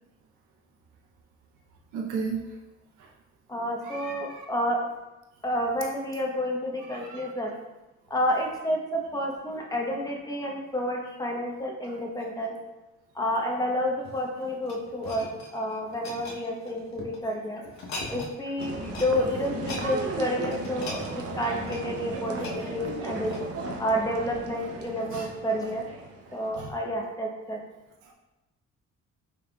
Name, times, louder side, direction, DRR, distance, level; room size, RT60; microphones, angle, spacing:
voice 1, 1.9-2.4 3.0-3.1 3.8-4.4 6.9-7.3 25.1-25.3 26.6-26.7 28.0-28.1, right 5 dB, 90° right, -1 dB, 0.7 m, -35 dB
voice 2, 3.5-4.9 5.4-7.5 8.1-12.6 13.1-17.6 18.1-21.1 21.3-23.4 23.8-25.8 26.3-27.6, equal, 10° left, -1 dB, 0.9 m, -30 dB
sound 1, 13.9-17.2 17.7-18.4 18.6-19.1 19.4-23.7 24.3-24.4, left 2 dB, 65° left, 0.9 m, -41 dB
sound 2, 18.6-26.7, right 2 dB, 50° right, 0.7 m, -36 dB
4.8 x 3.5 x 2.3 m, 1.0 s
cardioid pair, 90°, 30 cm